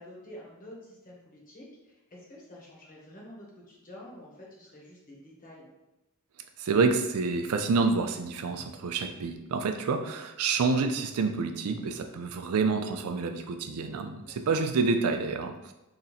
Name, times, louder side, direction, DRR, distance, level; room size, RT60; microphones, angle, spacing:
voice 1, 0.0-5.7 10.0-10.2 14.2-14.6, left 1 dB, 40° left, -4 dB, 1.0 m, -49 dB
voice 2, 6.6-15.5, right 4 dB, 80° right, 6 dB, 0.4 m, -28 dB
2.9 x 2.6 x 4.0 m, 0.97 s
head